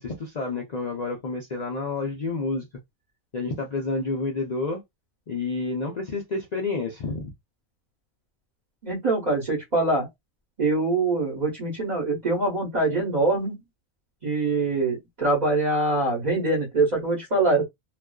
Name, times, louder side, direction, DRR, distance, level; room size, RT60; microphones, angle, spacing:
voice 1, 0.0-2.7 3.3-4.8 5.3-7.3, left 3 dB, 75° left, 0.3 m, -29 dB
voice 2, 8.8-10.1 10.6-13.6 14.2-17.6, right 2 dB, 40° right, 0.9 m, -24 dB
2.4 x 2.3 x 2.2 m
omnidirectional pair, 1.4 m